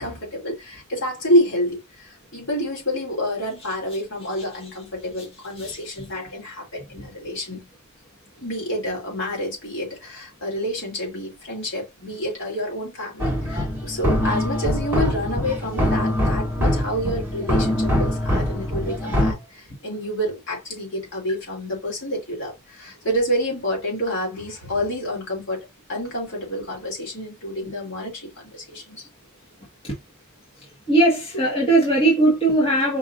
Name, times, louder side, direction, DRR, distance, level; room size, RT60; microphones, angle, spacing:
voice 1, 0.0-7.7 8.4-29.1, equal, 55° left, 2.9 m, -28 dB
sound 1, 13.2-19.3, equal, 10° right, 2.0 m, -23 dB
voice 2, 30.9-33.0, right 2 dB, 25° left, 1.6 m, -19 dB
5.3 x 3.6 x 2.5 m
head